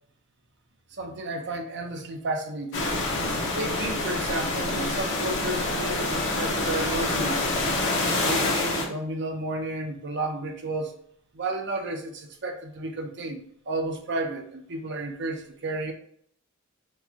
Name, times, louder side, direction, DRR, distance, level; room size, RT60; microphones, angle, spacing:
voice 1, 1.0-2.9 3.6-7.5 8.2-10.9 11.3-15.9, right 2 dB, 55° right, 4 dB, 0.6 m, -32 dB
sound 1, 2.7-8.9, left 2 dB, 60° left, 0.9 m, -26 dB
4.7 x 2.3 x 2.8 m, 0.63 s
head